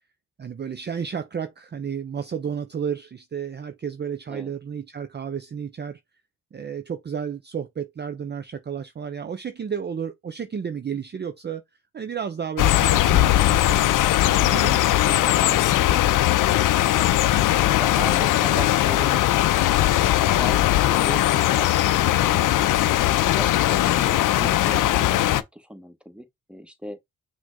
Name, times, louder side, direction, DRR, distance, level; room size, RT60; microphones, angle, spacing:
voice 1, 0.4-6.0 6.5-11.6 11.9-14.0 14.3-16.0, right 7 dB, 30° right, 0.5 m, -32 dB
sound 1, 12.6-25.4, left 14 dB, 65° left, 0.5 m, -19 dB
voice 2, 16.9-19.2 20.2-22.8 23.4-27.0, equal, 5° right, 1.2 m, -38 dB
5.9 x 2.2 x 3.8 m
hypercardioid pair, 40°, 34 cm